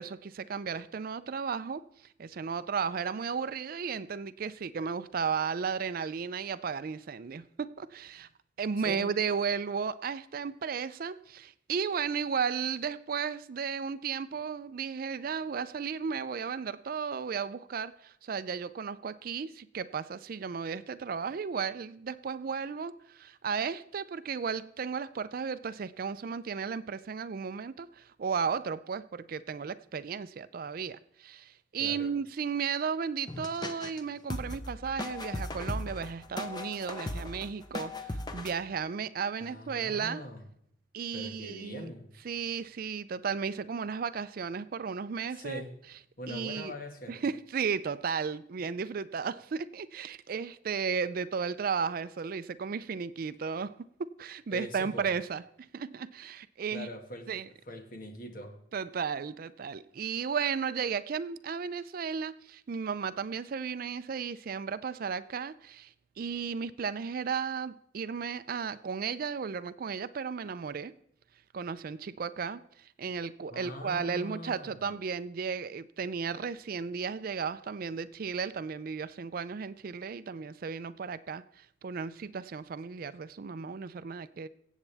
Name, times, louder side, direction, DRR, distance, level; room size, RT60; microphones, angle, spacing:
voice 1, 0.0-1.8 2.2-8.3 8.6-40.2 40.9-41.9 42.2-45.6 46.3-46.7 47.1-53.7 54.0-56.9 57.3-57.5 58.7-70.9 71.5-84.5, right 6 dB, 50° right, 0.4 m, -34 dB
voice 2, 8.8-9.1 31.8-32.1 39.4-40.5 41.1-42.1 45.3-45.7 46.2-47.2 54.5-55.1 56.7-57.3 57.7-58.5 73.5-75.0, equal, 50° left, 1.8 m, -42 dB
sound 1, 33.3-34.0 34.3-38.5, left 1 dB, 20° left, 0.8 m, -37 dB
24.0 x 8.2 x 3.4 m
head